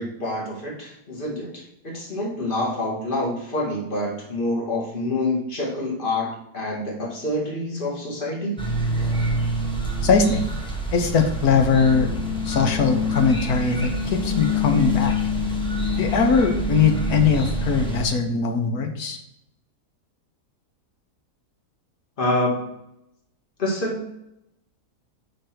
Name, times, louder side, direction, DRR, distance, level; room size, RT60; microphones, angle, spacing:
voice 1, 0.0-8.7 22.2-22.8 23.6-24.3, left 1 dB, 35° left, -3 dB, 2.1 m, -27 dB
sound 1, 8.6-18.0, left 1 dB, 5° left, 1.0 m, -26 dB
voice 2, 10.0-10.4 10.9-12.1 12.4-15.1 16.0-19.2, left 5 dB, 70° left, 5 dB, 1.5 m, -20 dB
5.4 x 4.2 x 5.8 m, 0.81 s
omnidirectional pair, 1.7 m